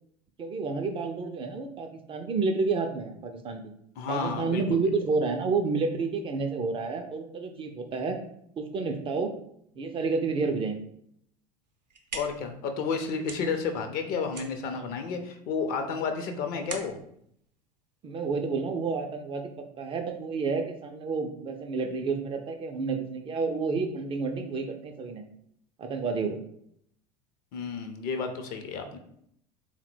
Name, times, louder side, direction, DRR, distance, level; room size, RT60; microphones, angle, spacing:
voice 1, 0.4-3.6 4.1-8.2 8.6-9.3 9.8-10.8 14.8-14.9 18.0-19.5 19.8-25.2 25.8-26.4, right 4 dB, 25° right, 5 dB, 0.4 m, -30 dB
voice 2, 4.0-4.8 12.1-17.0 27.5-29.0, left 5 dB, 45° left, 6 dB, 0.6 m, -31 dB
sound 1, 11.6-18.5, right 4 dB, 85° right, 0.5 m, -45 dB
3.7 x 2.1 x 4.3 m, 0.71 s
figure-of-eight pair, 70°, 21 cm